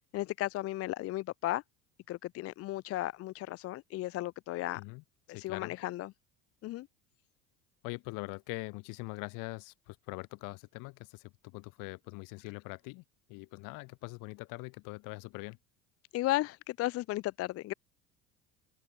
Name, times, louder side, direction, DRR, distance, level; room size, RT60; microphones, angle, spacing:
voice 1, 0.1-1.6 2.1-4.8 5.3-6.1 6.6-6.9 16.1-17.7, left 16 dB, 45° left, 0.5 m, -34 dB
voice 2, 4.7-5.8 7.8-15.6, left 27 dB, 70° left, 1.9 m, -43 dB
open air
supercardioid pair, 95°, 34 cm